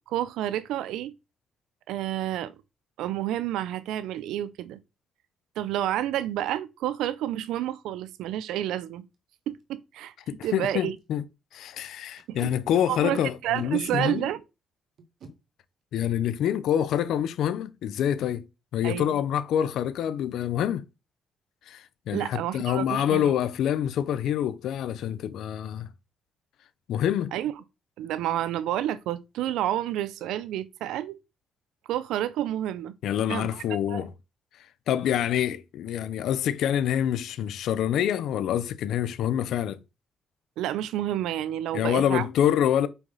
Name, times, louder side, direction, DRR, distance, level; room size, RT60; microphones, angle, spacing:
voice 1, 0.1-1.1 1.9-2.5 3.0-4.8 5.6-9.0 9.5-10.1 10.4-11.0 12.3-12.4 12.9-14.4 18.8-19.2 22.1-23.3 27.3-27.5 28.0-31.2 31.9-32.9 33.3-34.1 40.6-42.2, right 12 dB, 90° right, 0.5 m, -30 dB
Packing tape duct tape, 8.5-8.7 9.1-9.2 9.5-9.6 10.1-10.2 10.4-10.6 11.0-11.1 12.2-12.5 13.5-14.0 15.0-15.3 16.9-17.1 17.4-17.6 17.8-18.3, right 3 dB, 65° right, 1.5 m, -44 dB
voice 2, 10.3-11.2 11.5-14.3 15.9-18.5 18.7-20.8 21.7-25.9 26.9-27.3 33.0-34.1 34.9-39.8 41.7-42.9, left 10 dB, 80° left, 0.6 m, -26 dB
5.8 x 5.4 x 4.0 m
cardioid pair, 90°, 0 cm